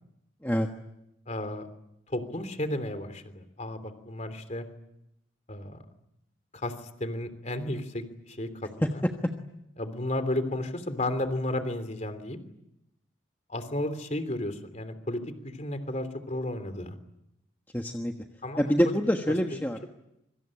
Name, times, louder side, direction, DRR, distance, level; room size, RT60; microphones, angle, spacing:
voice 1, 1.3-1.7 2.1-4.6 5.5-5.8 6.5-6.7 7.0-8.5 8.8-9.0 9.8-12.4 13.5-17.0 18.4-19.0, left 1 dB, 35° left, 10 dB, 3.2 m, -33 dB
voice 2, 17.7-18.1 18.6-19.9, equal, 10° left, 3 dB, 1.4 m, -26 dB
26.0 x 24.5 x 8.8 m, 0.84 s
head